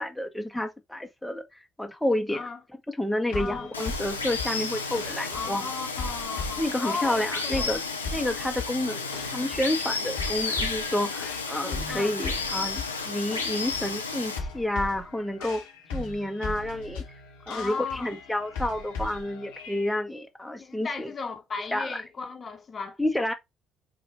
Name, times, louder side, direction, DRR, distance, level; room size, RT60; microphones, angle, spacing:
voice 1, 0.0-1.4 1.8-2.5 2.9-5.7 6.6-7.8 8.1-15.6 15.9-17.0 17.5-21.1 21.7-22.0 23.0-23.3, left 1 dB, 5° left, 1.0 m, -30 dB
sound 1, 3.3-20.0, left 3 dB, 70° left, 1.2 m, -39 dB
voice 2, 3.3-3.7 5.3-7.3 7.5-7.7 11.9-12.1 12.6-12.7 17.5-18.1 20.6-23.0, left 4 dB, 35° left, 1.0 m, -35 dB
Water, 3.7-14.4, left 4 dB, 85° left, 0.5 m, -32 dB
4.9 x 2.5 x 4.2 m
figure-of-eight pair, 50°, 0 cm